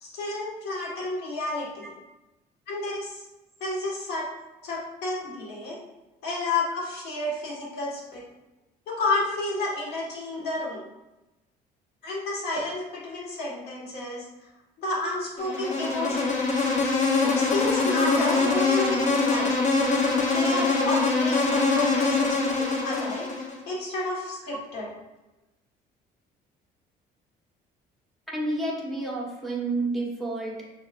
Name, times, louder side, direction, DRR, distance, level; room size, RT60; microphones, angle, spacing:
voice 1, 0.0-1.9 2.7-3.3 3.6-4.3 4.6-5.8 6.2-8.2 8.9-10.9 12.0-14.2 14.8-16.4 17.2-19.0 19.3-19.5 20.2-24.9, left 2 dB, 75° left, -5 dB, 1.5 m, -31 dB
Insect, 15.4-23.6, left 3 dB, 45° left, 0.8 m, -24 dB
voice 2, 28.3-30.5, right 2 dB, ahead, -3 dB, 1.1 m, -30 dB
5.7 x 3.2 x 2.5 m, 0.99 s
cardioid pair, 110°, 17 cm